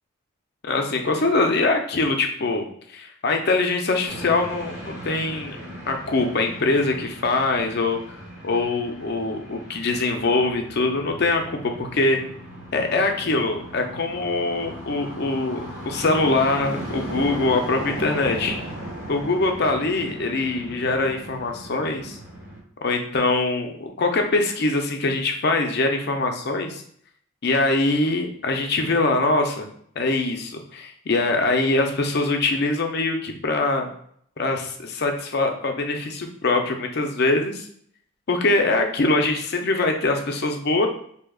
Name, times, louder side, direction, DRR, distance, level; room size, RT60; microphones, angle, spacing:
voice 1, 0.6-5.6 5.9-8.0 8.4-12.2 12.7-18.6 19.1-22.2 22.8-26.8 27.4-29.7 30.0-33.9 34.4-37.7 38.3-40.9, left 2 dB, 50° left, 4 dB, 0.5 m, -23 dB
sound 1, 4.1-22.6, right 1 dB, 15° right, 1.0 m, -37 dB
4.8 x 2.8 x 2.3 m, 0.64 s
head